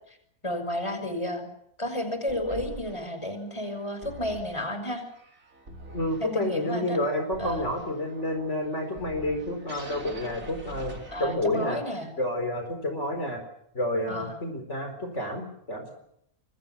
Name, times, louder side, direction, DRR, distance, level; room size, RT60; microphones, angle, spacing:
voice 1, 0.4-1.5 1.8-5.0 6.2-7.0 7.4-7.7 11.1-12.1 14.1-14.3, left 1 dB, 20° left, 7 dB, 6.1 m, -32 dB
sound 1, 2.3-11.7, right 2 dB, 65° right, 4.5 m, -45 dB
voice 2, 5.9-11.8 12.2-13.4 13.7-15.9, left 1 dB, 50° left, 5 dB, 4.7 m, -29 dB
27.5 x 24.5 x 7.2 m, 0.74 s
omnidirectional pair, 1.5 m